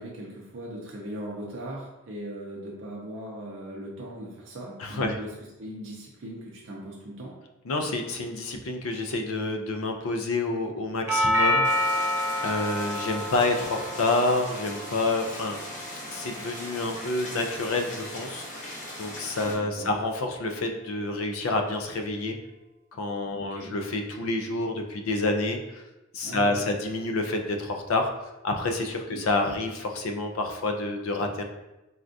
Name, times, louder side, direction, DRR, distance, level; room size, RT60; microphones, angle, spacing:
voice 1, 0.0-5.3 5.6-7.3 19.4-19.9 23.3-23.7 26.2-26.7 29.1-29.3, right 1 dB, 65° right, -3 dB, 0.5 m, -39 dB
voice 2, 4.8-5.2 7.7-15.6 16.1-22.4 22.9-25.8 26.1-28.1 28.4-31.4, left 2 dB, 75° left, 4 dB, 0.4 m, -28 dB
Doorbell, 11.1-19.1, equal, 10° right, 0.4 m, -30 dB
sound 1, 11.6-19.5, left 1 dB, 40° left, 0.7 m, -39 dB
3.5 x 2.3 x 2.5 m, 1.0 s
head